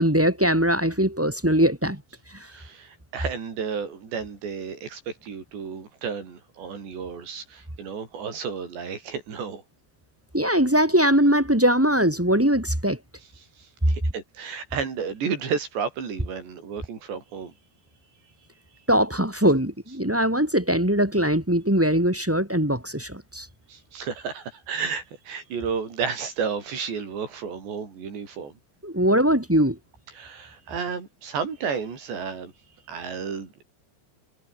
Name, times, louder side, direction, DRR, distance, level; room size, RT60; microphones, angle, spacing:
voice 1, 0.0-2.0 10.3-13.0 18.9-23.4 28.8-29.8, equal, 5° right, 1.4 m, -21 dB
voice 2, 2.4-9.6 13.4-17.5 23.7-28.6 30.1-32.5 32.9-33.6, right 6 dB, 80° right, 7.2 m, -32 dB
omnidirectional pair, 5.0 m